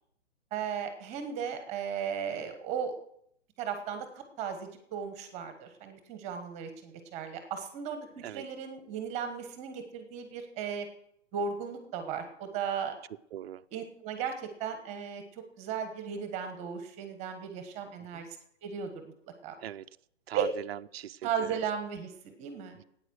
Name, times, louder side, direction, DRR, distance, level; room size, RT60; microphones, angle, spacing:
voice 1, 0.5-3.0 3.6-10.9 11.3-12.9 13.7-18.3 18.6-19.1 19.4-19.5 20.3-20.5 21.2-22.7, right 7 dB, 20° right, 7 dB, 1.2 m, -36 dB
voice 2, 13.3-13.6 18.1-18.2 19.6-19.8 20.3-21.6 22.8-22.9, right 11 dB, 55° right, 11 dB, 0.6 m, -40 dB
13.5 x 9.2 x 6.3 m, 0.71 s
hypercardioid pair, 150°, 37 cm